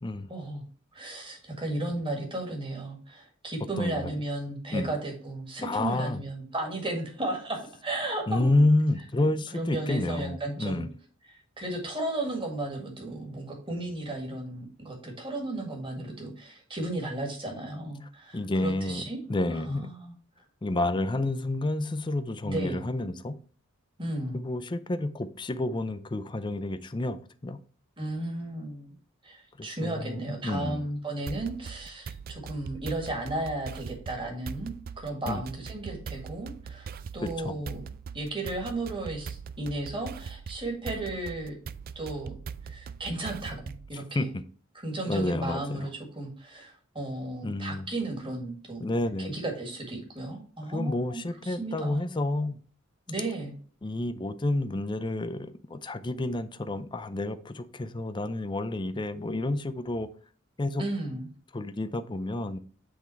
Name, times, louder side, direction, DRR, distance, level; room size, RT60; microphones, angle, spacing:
voice 1, 0.3-0.6 0.9-8.6 9.2-10.8 11.3-19.2 19.5-20.1 22.4-22.8 24.0-24.4 28.0-28.9 29.2-37.8 38.1-41.6 42.0-42.3 42.6-43.6 43.9-44.3 44.8-48.8 49.2-52.1 53.1-53.5 60.8-61.3, right 2 dB, 25° right, 1.8 m, -34 dB
voice 2, 3.8-4.1 4.7-4.9 5.6-6.2 8.3-10.9 18.3-19.0 19.3-19.9 20.6-23.3 24.3-27.2 27.4-27.6 29.6-30.8 35.3-35.4 37.2-37.5 44.1-44.4 45.0-45.9 47.4-47.9 48.8-49.3 50.7-52.6 53.8-60.1 60.6-60.8 61.5-62.6, left 2 dB, 20° left, 0.5 m, -29 dB
sound 1, 31.3-43.9, right 6 dB, 45° right, 0.3 m, -41 dB
8.3 x 3.5 x 4.5 m
head